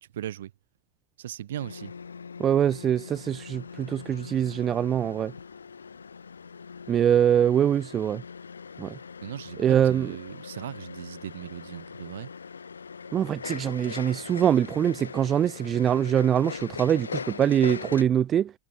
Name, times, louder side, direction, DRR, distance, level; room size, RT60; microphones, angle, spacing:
voice 1, 0.0-0.5 1.2-1.9 9.2-12.3, right 12 dB, 60° right, 2.3 m, -38 dB
sound 1, 1.6-18.0, left 5 dB, 75° left, 2.2 m, -41 dB
voice 2, 2.4-5.3 6.9-8.2 8.8-9.0 9.6-10.1 13.1-18.5, right 9 dB, 25° right, 0.7 m, -23 dB
figure-of-eight pair, 90°, 0 cm